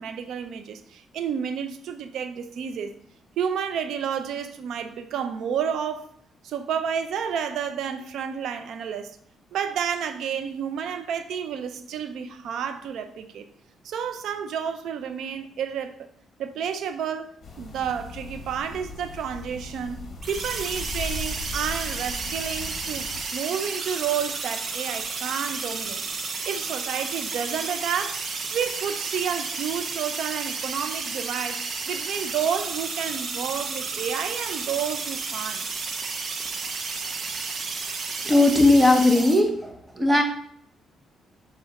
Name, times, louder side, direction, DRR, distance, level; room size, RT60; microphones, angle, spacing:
voice 1, 0.0-3.0 3.4-6.1 6.4-9.2 9.5-13.5 13.8-16.1 16.4-23.1 23.3-26.1 26.5-28.3 28.5-35.7, right 7 dB, 75° right, 0.6 m, -30 dB
sound 1, 17.4-23.2, left 3 dB, 45° left, 1.4 m, -38 dB
sound 2, 20.2-39.4, right 4 dB, 55° right, 0.9 m, -32 dB
voice 2, 38.2-39.7 39.9-40.2, left 2 dB, 10° right, 1.2 m, -18 dB
5.0 x 4.2 x 5.2 m
cardioid pair, 80°, 0 cm